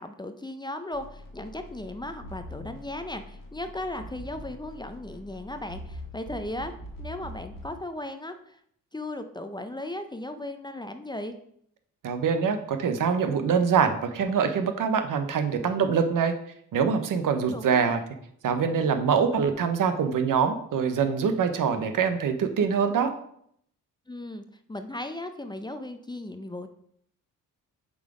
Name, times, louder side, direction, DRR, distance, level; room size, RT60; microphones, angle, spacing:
voice 1, 0.0-8.6 8.9-11.3 17.4-18.0 24.1-26.7, left 1 dB, 15° left, 7 dB, 0.6 m, -37 dB
sound 1, 0.9-7.8, left 1 dB, 75° left, 1.6 m, -43 dB
voice 2, 12.0-16.3 16.7-18.0 18.4-23.1, right 6 dB, 70° right, 8 dB, 0.9 m, -24 dB
7.2 x 3.8 x 4.9 m, 0.69 s
cardioid pair, 75°, 33 cm